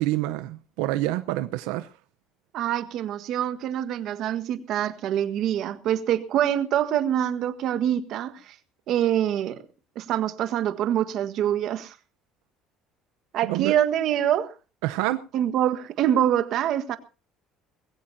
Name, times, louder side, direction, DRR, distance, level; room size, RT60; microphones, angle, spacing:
voice 1, 0.0-1.9 13.4-13.7 14.8-15.2, right 16 dB, 90° right, 0.8 m, -27 dB
voice 2, 2.5-8.5 8.9-9.6 9.9-11.9 13.3-14.5 15.3-17.0, right 10 dB, 55° right, 1.5 m, -25 dB
20.5 x 16.5 x 2.8 m
cardioid pair, 140°, 0 cm